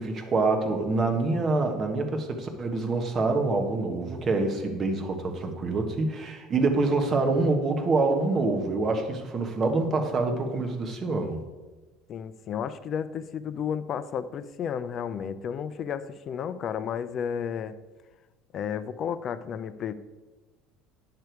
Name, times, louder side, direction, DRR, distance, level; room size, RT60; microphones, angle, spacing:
voice 1, 0.0-11.4, right 3 dB, 25° right, 4 dB, 1.2 m, -26 dB
voice 2, 12.1-17.8 18.5-19.9, left 8 dB, 35° left, 13 dB, 0.4 m, -32 dB
9.6 x 6.7 x 4.6 m, 1.2 s
cardioid pair, 155°, 0 cm